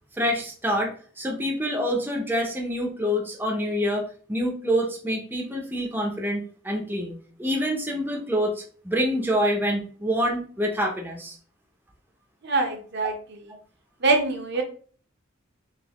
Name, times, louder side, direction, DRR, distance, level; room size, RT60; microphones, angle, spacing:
voice 1, 0.2-11.4 13.0-13.1, equal, 10° right, 0 dB, 0.7 m, -26 dB
voice 2, 12.4-13.1 14.0-14.6, right 3 dB, 60° right, 4 dB, 0.8 m, -23 dB
4.0 x 3.1 x 2.9 m, 0.43 s
head